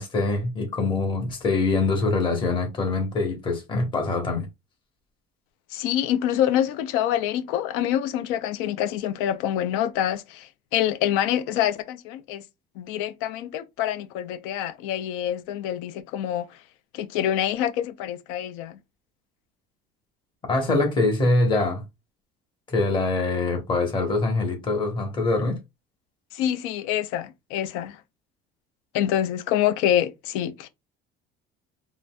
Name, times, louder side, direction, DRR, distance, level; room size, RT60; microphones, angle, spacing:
voice 1, 0.0-4.5 20.5-21.8 22.7-25.6, left 3 dB, 25° left, 0.9 m, -24 dB
voice 2, 5.7-12.4 12.8-16.5 16.9-18.8 26.3-28.0 28.9-30.7, left 11 dB, 80° left, 0.5 m, -26 dB
3.8 x 2.5 x 2.2 m
cardioid pair, 175°, 21 cm